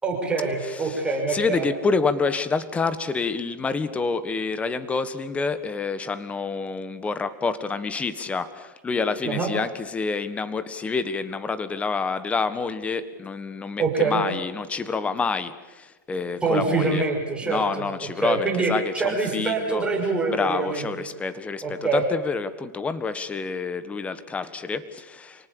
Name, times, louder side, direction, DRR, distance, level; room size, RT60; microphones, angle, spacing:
voice 1, 0.0-1.6 9.2-9.5 13.8-14.2 16.4-17.9 18.2-20.9 21.6-22.0, right 4 dB, 10° right, 0 dB, 6.1 m, -25 dB
voice 2, 0.6-1.0 1.3-17.1 17.4-19.8 20.3-25.5, left 4 dB, 15° left, 13 dB, 1.5 m, -28 dB
28.5 x 19.0 x 7.0 m, 1.2 s
hypercardioid pair, 135°, 10 cm